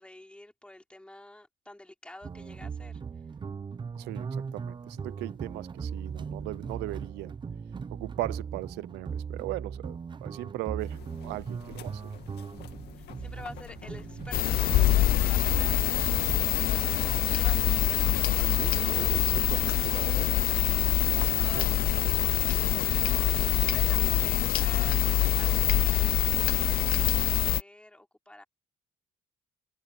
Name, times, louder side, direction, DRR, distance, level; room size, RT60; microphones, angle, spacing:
voice 1, 0.0-3.2 13.0-15.9 16.6-18.5 18.7-19.2 19.5-19.6 20.9-22.1 22.5-23.4 23.7-26.0 26.3-28.4, left 1 dB, 5° left, 3.7 m, -49 dB
sound 1, 2.2-16.5, right 6 dB, 25° right, 0.9 m, -39 dB
voice 2, 4.0-7.4 7.9-12.1 18.3-20.3 21.2-21.7, right 19 dB, 90° right, 0.8 m, -38 dB
sound 2, 10.8-26.8, left 14 dB, 75° left, 2.1 m, -49 dB
sound 3, 14.3-27.6, left 14 dB, 60° left, 0.8 m, -25 dB
cardioid pair, 110°, 17 cm